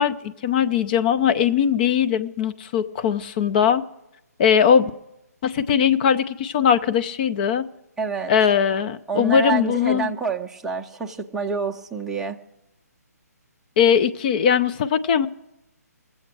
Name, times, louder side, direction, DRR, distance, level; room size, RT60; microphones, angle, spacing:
voice 1, 0.0-3.8 4.4-4.9 5.4-7.7 8.3-10.1 13.8-15.3, left 8 dB, 30° left, 11 dB, 0.6 m, -20 dB
voice 2, 8.0-8.3 9.1-12.4, right 5 dB, 5° right, -1 dB, 0.7 m, -27 dB
20.5 x 7.8 x 4.7 m, 0.91 s
figure-of-eight pair, 140°, 9 cm